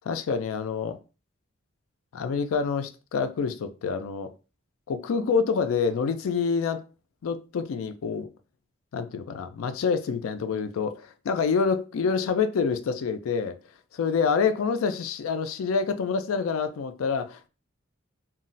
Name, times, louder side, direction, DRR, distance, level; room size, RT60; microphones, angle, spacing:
voice 1, 0.0-1.0 2.1-4.3 4.9-6.8 7.2-8.3 8.9-13.6 13.9-17.5, left 5 dB, 85° left, 0.4 m, -27 dB
2.3 x 2.0 x 3.8 m
head